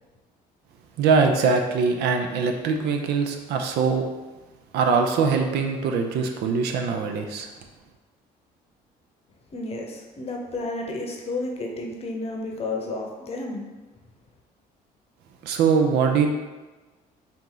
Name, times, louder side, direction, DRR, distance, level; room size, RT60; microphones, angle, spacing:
voice 1, 1.0-4.1 4.7-7.5 15.4-16.3, right 5 dB, 75° right, 4 dB, 0.6 m, -22 dB
voice 2, 9.5-13.6, left 2 dB, 35° left, 1 dB, 0.8 m, -31 dB
4.2 x 2.5 x 3.8 m, 1.2 s
cardioid pair, 110°, 17 cm